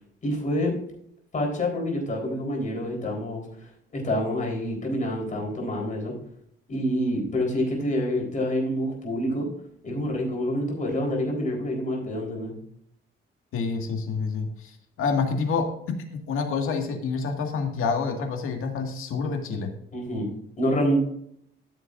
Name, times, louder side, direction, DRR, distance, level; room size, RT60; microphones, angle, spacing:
voice 1, 0.2-0.7 1.3-3.4 3.9-6.1 6.7-9.5 9.8-12.5 19.9-20.3 20.6-21.0, equal, 35° left, 0 dB, 3.9 m, -27 dB
voice 2, 13.5-15.7 16.1-19.7, left 5 dB, 85° left, 3 dB, 1.9 m, -28 dB
14.0 x 7.1 x 2.5 m, 0.71 s
cardioid pair, 135°, 21 cm